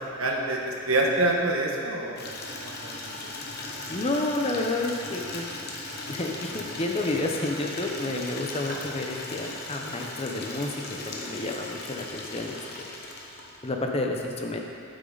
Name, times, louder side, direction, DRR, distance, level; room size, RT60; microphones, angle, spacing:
voice 1, 0.0-3.1 8.7-8.8, right 2 dB, 85° right, 0 dB, 1.3 m, -27 dB
Water tap faucet / Liquid, 2.2-13.7, left 2 dB, 50° left, 1.1 m, -38 dB
voice 2, 3.9-5.7 6.1-12.6 13.6-14.6, left 2 dB, 30° left, 1 dB, 0.8 m, -30 dB
12.0 x 6.7 x 4.0 m, 2.4 s
head